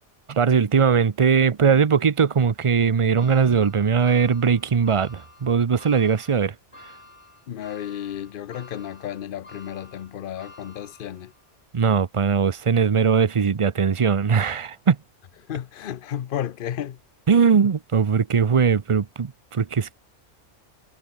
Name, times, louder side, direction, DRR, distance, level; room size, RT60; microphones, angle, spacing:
voice 1, 0.3-6.5 11.7-15.0 17.3-19.9, right 6 dB, 35° right, 0.6 m, -20 dB
sound 1, 3.2-11.5 12.0-12.1 13.3-13.4, left 2 dB, 70° left, 5.8 m, -49 dB
voice 2, 7.5-11.3 15.5-17.0 17.3-17.4, left 10 dB, 55° left, 0.8 m, -33 dB
omnidirectional pair, 1.2 m